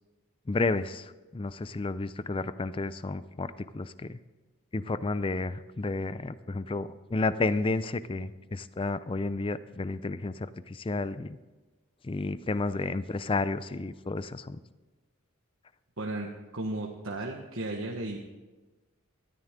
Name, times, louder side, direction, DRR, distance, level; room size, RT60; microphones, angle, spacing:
voice 1, 0.5-4.2 4.7-11.4 12.0-14.6, left 3 dB, 25° left, 15 dB, 0.4 m, -31 dB
voice 2, 16.0-16.3 16.5-18.2, right 2 dB, 65° right, -1 dB, 1.3 m, -34 dB
18.5 x 13.0 x 3.7 m, 1.2 s
head